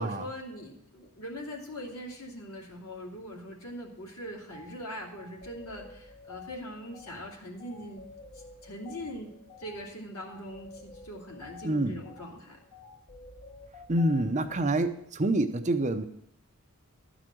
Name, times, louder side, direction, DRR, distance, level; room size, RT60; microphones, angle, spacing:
voice 1, 0.0-8.0 8.3-9.3 9.6-12.6, equal, 85° left, 0 dB, 2.5 m, -41 dB
sound 1, 4.5-4.7 5.1-14.9, left 4 dB, 55° left, 4.0 m, -50 dB
voice 2, 11.6-12.0 13.9-16.0, right 1 dB, 30° right, 7 dB, 0.6 m, -27 dB
12.0 x 5.0 x 7.6 m, 0.71 s
head